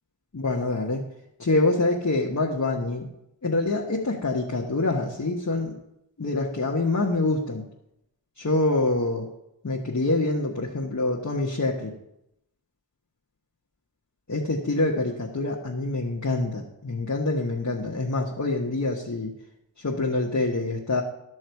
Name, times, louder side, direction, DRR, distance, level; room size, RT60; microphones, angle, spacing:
voice 1, 0.3-1.1 1.4-3.0 3.4-5.7 6.2-7.6 8.4-9.3 9.6-11.9 14.3-19.3 19.8-21.0, left 2 dB, 40° left, -1 dB, 1.4 m, -26 dB
13.0 x 6.3 x 4.7 m, 0.83 s
cardioid pair, 40°, 43 cm